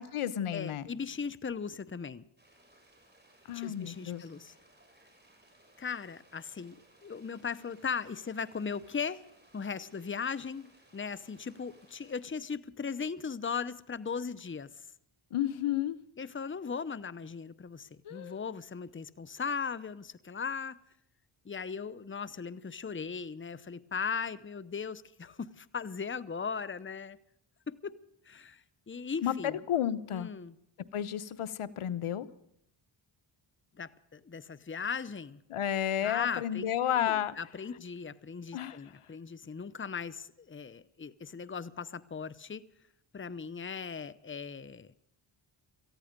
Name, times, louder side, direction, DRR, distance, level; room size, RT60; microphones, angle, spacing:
voice 1, 0.0-0.9 3.5-4.2 15.3-16.0 18.0-18.4 29.2-30.3 30.9-32.3 35.5-37.4 38.5-38.9, left 10 dB, 80° left, 16 dB, 0.9 m, -32 dB
voice 2, 0.5-2.2 3.5-4.5 5.8-6.8 7.0-9.2 9.5-14.7 16.2-20.8 21.4-27.2 27.7-28.0 28.3-29.6 30.1-30.5 33.8-35.4 36.0-36.6 37.0-42.7 43.1-44.9, left 6 dB, 25° left, 16 dB, 0.8 m, -38 dB
sound 1, 2.4-12.2, right 1 dB, 20° right, 6.6 m, -63 dB
18.5 x 14.5 x 5.2 m, 0.78 s
cardioid pair, 55°, 50 cm